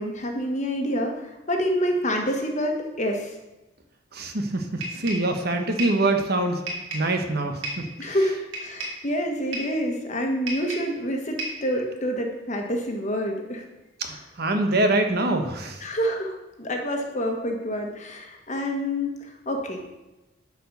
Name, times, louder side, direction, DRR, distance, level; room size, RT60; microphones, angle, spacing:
voice 1, 0.0-3.3 8.0-13.7 15.8-19.8, equal, 40° left, 2 dB, 1.4 m, -27 dB
voice 2, 4.1-6.6 6.9-8.2 14.0-15.8, right 2 dB, 55° right, 5 dB, 1.1 m, -25 dB
sound 1, 4.8-5.3 5.8-6.0 6.7-7.1 7.6-7.9 8.5-9.0 9.5-9.8 10.5-11.0 11.4-11.7, right 2 dB, 80° right, 2.9 m, -33 dB
11.0 x 4.9 x 6.7 m, 1.0 s
head